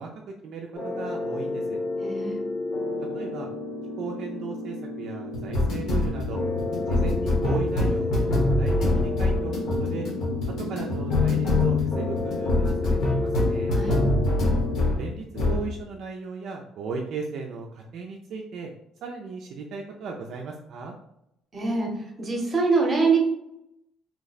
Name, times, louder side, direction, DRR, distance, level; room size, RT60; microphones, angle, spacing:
voice 1, 0.0-1.8 3.1-3.5 4.0-6.4 6.9-9.5 9.8-10.1 10.7-13.7 15.0-18.7 19.0-20.9, right 4 dB, 55° right, 1 dB, 0.4 m, -36 dB
sound 1, 0.7-15.0 15.3-15.7, left 2 dB, 60° left, 1.0 m, -25 dB
voice 2, 2.0-2.4 13.7-14.1 21.5-21.9 22.2-23.2, right 4 dB, 25° right, 0 dB, 0.8 m, -24 dB
2.8 x 2.1 x 4.0 m, 0.80 s
cardioid pair, 150°, 0 cm